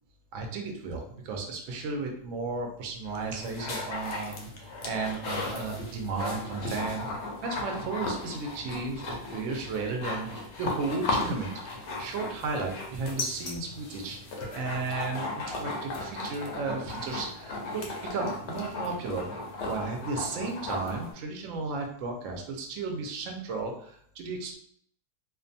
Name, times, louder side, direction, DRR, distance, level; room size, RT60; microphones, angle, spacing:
voice 1, 0.3-7.1 7.4-17.8 18.1-19.3 19.6-24.6, right 3 dB, 70° right, 2 dB, 0.8 m, -34 dB
sound 1, 3.1-21.1, left 2 dB, 65° left, 0.7 m, -36 dB
2.6 x 2.2 x 2.6 m, 0.65 s
omnidirectional pair, 1.5 m